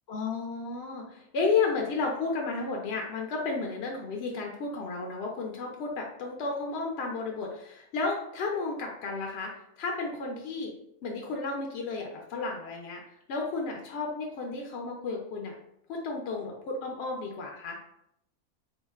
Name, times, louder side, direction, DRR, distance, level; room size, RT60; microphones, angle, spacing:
voice 1, 0.1-10.7 11.0-13.0 13.3-15.5 15.9-17.8, left 4 dB, 65° left, 0 dB, 0.7 m, -32 dB
3.8 x 2.1 x 3.4 m, 0.76 s
omnidirectional pair, 1.5 m